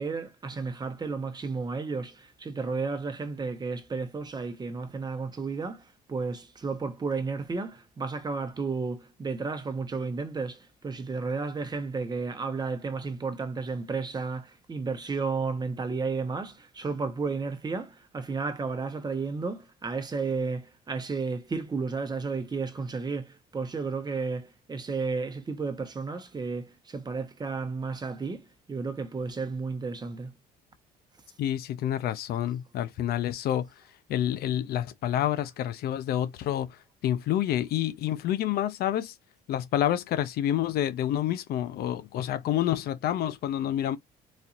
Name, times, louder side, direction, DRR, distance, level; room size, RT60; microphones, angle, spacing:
voice 1, 0.0-5.8 6.1-30.3, right 4 dB, 25° right, 0.9 m, -32 dB
voice 2, 31.4-33.7 34.1-36.8 37.0-39.1 39.5-44.0, left 11 dB, 65° left, 0.6 m, -28 dB
4.1 x 2.7 x 2.4 m
cardioid pair, 110°, 17 cm